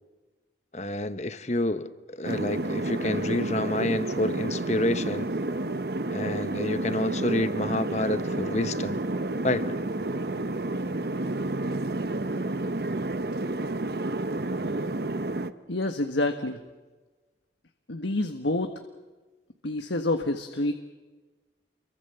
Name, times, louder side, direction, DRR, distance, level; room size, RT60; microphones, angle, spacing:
voice 1, 0.7-5.3 6.1-9.0 9.4-9.7, left 1 dB, 40° left, 12 dB, 1.2 m, -28 dB
sound 1, 2.2-15.5, right 2 dB, 55° right, 0.9 m, -30 dB
voice 2, 15.7-16.6 17.9-18.7 19.6-20.7, left 2 dB, 85° left, 6 dB, 1.6 m, -27 dB
29.0 x 23.5 x 7.0 m, 1.3 s
head